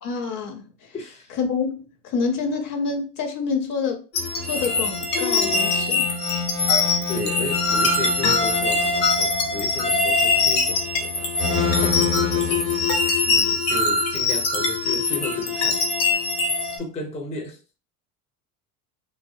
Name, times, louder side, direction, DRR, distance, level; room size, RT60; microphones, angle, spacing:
voice 1, 0.0-0.9 1.4-4.0 4.4-6.1, left 5 dB, 50° left, 0.7 m, -27 dB
voice 2, 0.9-1.4 7.1-15.8 16.8-17.6, left 3 dB, 15° left, 0.5 m, -34 dB
sound 1, 4.1-16.8, left 3 dB, 75° left, 0.9 m, -22 dB
2.3 x 2.0 x 2.6 m
hypercardioid pair, 75°, 45 cm